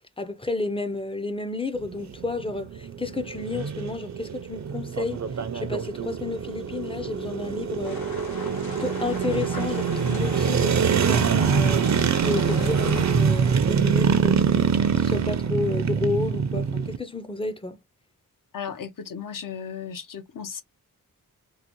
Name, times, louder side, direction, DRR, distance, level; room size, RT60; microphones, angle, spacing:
voice 1, 0.2-8.0 8.7-11.9 12.2-14.7 15.0-17.8, left 2 dB, 15° left, 0.5 m, -31 dB
sound 1, 1.7-17.0, right 6 dB, 55° right, 0.5 m, -24 dB
sound 2, 7.8-13.1, left 3 dB, 85° left, 1.1 m, -39 dB
voice 2, 18.5-20.6, left 7 dB, 65° left, 0.7 m, -35 dB
3.8 x 2.0 x 2.9 m
wide cardioid pair, 130°, 35 cm